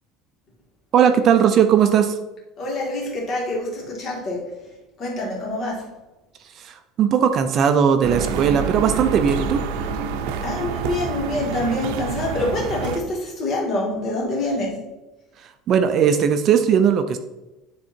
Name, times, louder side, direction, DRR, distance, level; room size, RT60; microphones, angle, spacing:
voice 1, 0.9-2.2 6.6-9.6 15.7-17.2, right 8 dB, 40° right, 8 dB, 0.5 m, -18 dB
voice 2, 2.6-4.7 5.0-5.9 10.4-14.9, left 2 dB, 35° left, -2 dB, 2.3 m, -26 dB
sound 1, 8.0-13.0, right 6 dB, 85° right, 0.6 m, -27 dB
10.5 x 3.7 x 4.4 m, 1.0 s
cardioid pair, 155°, 0 cm